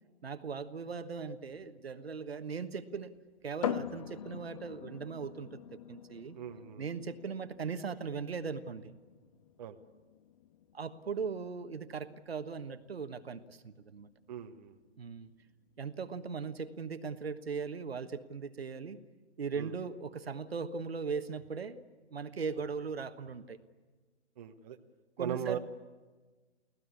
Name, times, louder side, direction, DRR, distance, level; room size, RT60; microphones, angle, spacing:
voice 1, 0.2-3.1 3.4-6.4 6.8-8.9 10.7-14.1 15.0-15.3 15.8-19.0 19.4-21.8 22.1-23.6 25.2-25.6, right 5 dB, 60° right, 9 dB, 1.4 m, -39 dB
sound 1, 3.6-17.1, left 9 dB, 30° left, 0.7 m, -45 dB
voice 2, 6.3-6.8 9.6-9.8 14.3-14.7 19.5-19.7 24.4-24.8 25.2-25.6, right 9 dB, 35° right, 5 dB, 1.2 m, -39 dB
29.5 x 18.0 x 8.6 m, 1.4 s
figure-of-eight pair, 130°, 34 cm